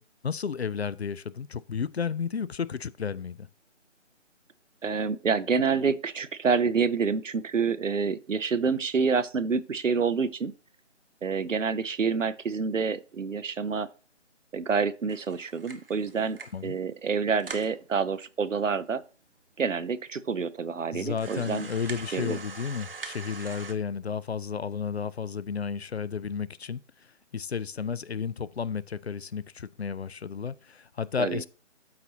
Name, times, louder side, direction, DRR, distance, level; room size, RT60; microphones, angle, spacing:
voice 1, 0.2-3.5 16.5-16.8 20.9-26.8 27.3-31.5, left 6 dB, 60° left, 0.5 m, -32 dB
voice 2, 4.8-10.5 11.2-13.9 14.5-16.4 16.6-19.0 19.6-21.7 22.1-22.4 31.2-31.4, right 5 dB, 90° right, 0.7 m, -27 dB
sound 1, 15.1-16.7 17.1-17.2 17.4-17.8 18.4-18.5 18.8-18.9 19.6-19.7 20.1-20.2 21.0-23.7, right 4 dB, 50° right, 0.9 m, -43 dB
12.5 x 4.3 x 2.8 m
figure-of-eight pair, 160°, 37 cm